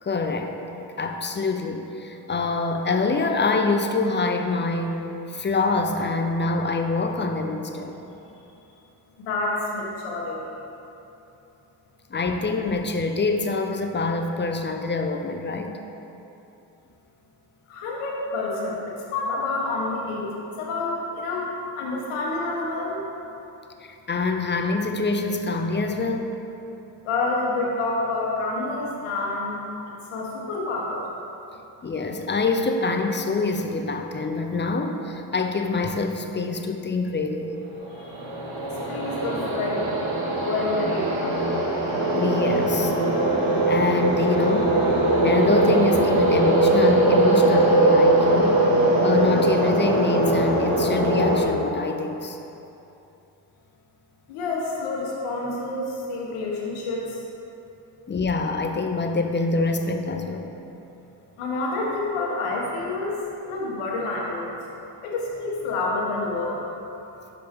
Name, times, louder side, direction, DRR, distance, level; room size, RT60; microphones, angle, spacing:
voice 1, 0.0-5.0 5.3-8.0 12.1-15.7 23.8-26.3 31.8-37.6 42.1-42.9 43.7-44.8 45.2-48.6 49.0-52.4 58.1-60.5, left 3 dB, 25° left, 4 dB, 0.5 m, -25 dB
voice 2, 9.2-10.4 17.7-23.0 27.0-29.6 30.1-31.1 37.9-38.2 38.9-39.8 40.4-41.6 54.3-57.2 61.4-63.2 63.4-64.5 65.0-66.7, left 2 dB, 90° left, -3 dB, 1.1 m, -28 dB
sound 1, 37.9-51.4, right 1 dB, 65° right, 1.2 m, -21 dB
5.9 x 5.1 x 3.5 m, 2.9 s
supercardioid pair, 60°, 50 cm